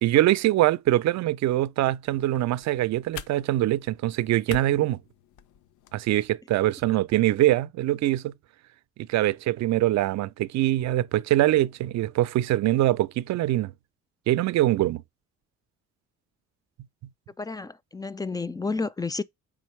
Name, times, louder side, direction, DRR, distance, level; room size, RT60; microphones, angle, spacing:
voice 1, 0.0-5.0 5.9-8.3 9.0-13.7 14.3-15.0, right 15 dB, 65° right, 0.4 m, -23 dB
sound 1, 2.0-6.0, left 9 dB, 80° left, 0.6 m, -44 dB
voice 2, 17.4-19.2, left 4 dB, 15° left, 0.3 m, -31 dB
4.4 x 3.8 x 3.1 m
cardioid pair, 90°, 30 cm